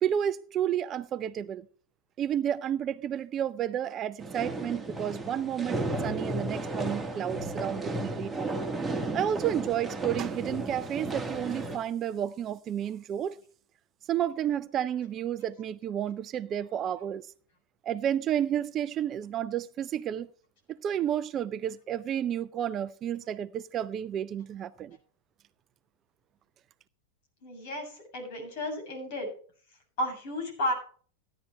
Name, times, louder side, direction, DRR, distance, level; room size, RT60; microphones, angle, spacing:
voice 1, 0.0-1.7 2.2-8.5 9.1-13.4 14.1-17.3 17.8-20.3 20.7-25.0, right 10 dB, 30° right, 0.5 m, -31 dB
sound 1, 4.2-11.8, right 2 dB, 10° right, 1.9 m, -34 dB
voice 2, 27.4-29.3 30.0-30.7, left 1 dB, 50° left, 7.1 m, -33 dB
16.0 x 11.0 x 3.1 m
figure-of-eight pair, 90°, 0 cm